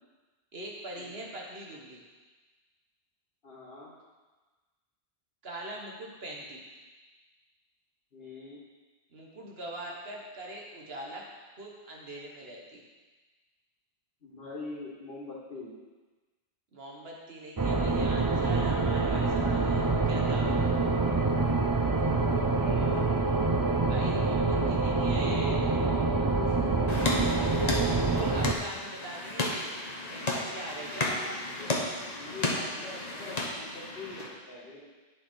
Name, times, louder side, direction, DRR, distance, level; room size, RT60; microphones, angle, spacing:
voice 1, 0.5-2.0 5.4-6.6 9.1-11.3 11.6-12.8 16.7-20.6 23.8-25.5 27.7-29.7 30.1-31.3, right 1 dB, 75° right, -2 dB, 1.8 m, -42 dB
voice 2, 3.4-3.9 8.1-8.6 14.2-15.7 22.2-23.0 25.2-25.6 26.1-27.1 32.2-34.9, left 3 dB, 70° left, -8 dB, 2.2 m, -43 dB
sound 1, 17.6-28.5, right 3 dB, 25° right, 0.5 m, -26 dB
sound 2, 26.9-34.3, left 2 dB, 40° left, 1.2 m, -33 dB
10.5 x 6.2 x 4.6 m, 1.3 s
omnidirectional pair, 1.0 m